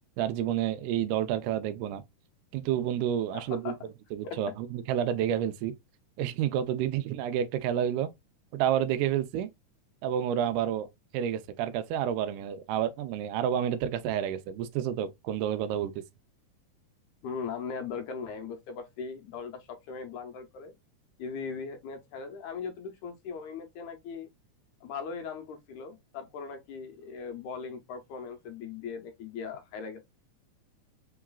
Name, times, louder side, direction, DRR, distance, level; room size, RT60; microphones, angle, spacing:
voice 1, 0.2-2.0 2.5-3.7 4.1-5.7 6.2-8.1 8.5-9.5 10.0-10.9 11.1-16.0, right 10 dB, 85° right, 2.1 m, -29 dB
voice 2, 3.3-3.8 4.2-4.5 17.2-20.7 21.2-24.3 24.8-30.0, left 5 dB, 80° left, 2.0 m, -39 dB
4.7 x 3.9 x 2.2 m
omnidirectional pair, 3.6 m